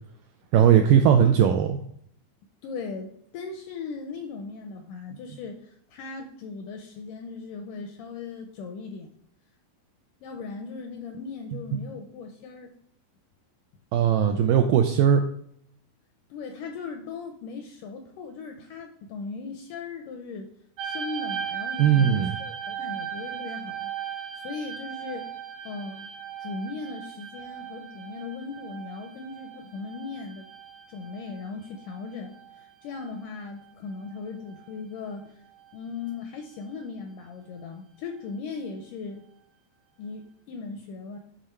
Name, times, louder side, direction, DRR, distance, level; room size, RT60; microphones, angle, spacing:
voice 1, 0.5-1.8 13.9-15.2 21.8-22.3, right 9 dB, 85° right, 5 dB, 1.9 m, -19 dB
voice 2, 2.6-9.1 10.2-12.7 16.3-20.5 20.8-25.3 25.7-26.1 26.4-30.5 30.9-35.4 35.7-39.2 40.0-41.2, left 4 dB, 80° left, 5 dB, 1.9 m, -38 dB
sound 1, 20.8-33.7 34.0-34.8 35.5-35.8, right 8 dB, 65° right, 1.9 m, -38 dB
10.5 x 3.8 x 4.3 m, 0.67 s
omnidirectional pair, 4.4 m